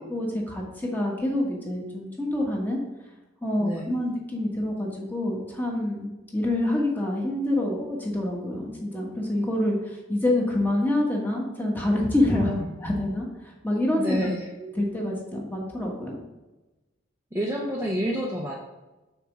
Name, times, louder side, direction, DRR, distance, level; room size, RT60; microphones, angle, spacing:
voice 1, 0.0-2.8 3.4-12.5 12.8-14.2 14.6-16.2, left 1 dB, 10° left, -2 dB, 1.3 m, -27 dB
voice 2, 3.6-4.0 12.3-12.6 14.0-14.5 17.3-18.5, equal, 15° right, -3 dB, 0.6 m, -28 dB
5.9 x 4.3 x 6.0 m, 1.1 s
head